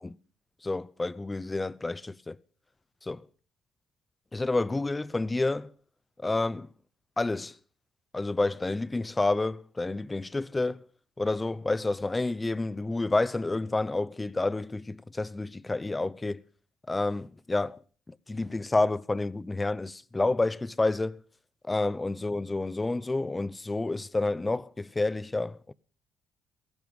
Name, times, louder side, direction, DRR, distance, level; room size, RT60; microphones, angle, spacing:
voice 1, 0.6-2.4 3.0-3.2 4.3-5.7 6.2-6.7 7.2-7.6 8.1-10.9 11.2-16.4 16.9-17.8 18.1-21.2 21.6-25.7, left 2 dB, 20° left, 0.7 m, -29 dB
17.0 x 15.0 x 5.4 m
supercardioid pair, 80°, 0 cm